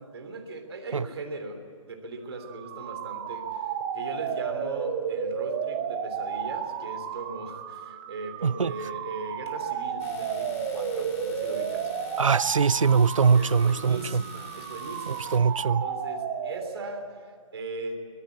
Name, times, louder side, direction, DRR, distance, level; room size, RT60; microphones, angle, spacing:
voice 1, 0.0-11.9 13.3-18.0, right 2 dB, 50° right, 3.3 m, -39 dB
sound 1, 2.3-17.0, right 7 dB, 20° right, 1.2 m, -33 dB
Domestic sounds home sounds, 10.0-15.4, left 4 dB, 25° left, 2.7 m, -48 dB
voice 2, 12.2-14.2 15.1-15.8, right 5 dB, 70° right, 0.5 m, -22 dB
24.0 x 17.5 x 8.5 m
figure-of-eight pair, 140°, 17 cm